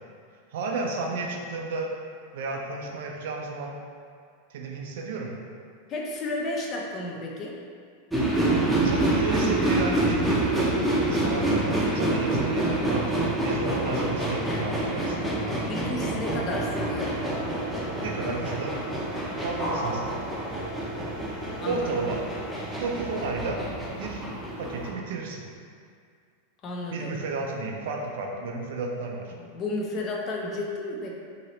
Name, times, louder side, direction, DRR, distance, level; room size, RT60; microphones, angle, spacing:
voice 1, 0.5-1.9 2.3-3.7 4.5-5.3 8.8-13.0 13.4-15.3 18.0-18.8 19.4-20.1 21.6-22.2 22.8-23.6 23.9-24.2 24.6-25.5 26.9-29.3, right 3 dB, 65° right, 0 dB, 0.5 m, -32 dB
voice 2, 5.9-7.6 15.5-17.2 21.6-21.9 26.6-27.2 29.3-31.1, left 2 dB, 35° left, -1 dB, 0.6 m, -32 dB
sound 1, 8.1-24.9, right 1 dB, ahead, 0.7 m, -27 dB
sound 2, 16.9-23.2, equal, 20° left, 1.5 m, -39 dB
2.8 x 2.7 x 3.0 m, 2.2 s
hypercardioid pair, 95°, 0 cm